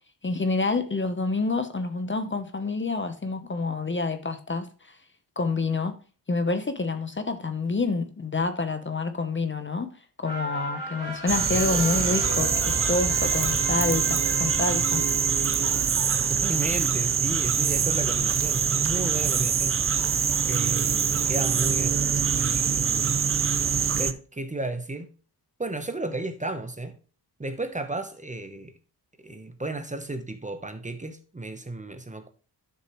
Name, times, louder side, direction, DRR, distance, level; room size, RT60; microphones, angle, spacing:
voice 1, 0.2-4.9 5.4-6.0 6.3-15.0, left 3 dB, 30° left, 0.8 m, -28 dB
sound 1, 10.2-16.9 17.3-17.4, left 1 dB, 85° left, 5.4 m, -36 dB
sound 2, 11.3-24.1, right 7 dB, 35° right, 0.5 m, -24 dB
voice 2, 16.3-19.8 20.4-22.0 22.3-23.3 23.9-25.1 25.6-26.9 27.4-28.7 29.2-32.3, right 2 dB, 20° right, 0.9 m, -33 dB
11.0 x 6.5 x 3.1 m
wide cardioid pair, 135°, 41 cm